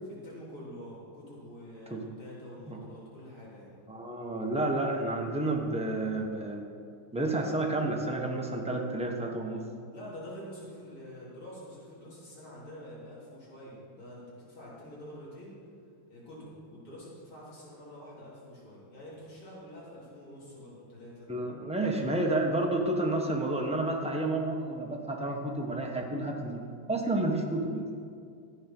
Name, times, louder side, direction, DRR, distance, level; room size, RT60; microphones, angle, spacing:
voice 1, 0.0-3.7 9.9-15.6 16.1-21.3 27.4-27.6, equal, 80° left, -7 dB, 4.5 m, -47 dB
voice 2, 3.9-6.6 7.1-9.6 21.3-26.6 26.9-27.9, right 2 dB, 5° right, 0 dB, 0.8 m, -30 dB
13.5 x 8.7 x 6.1 m, 2.3 s
omnidirectional pair, 2.3 m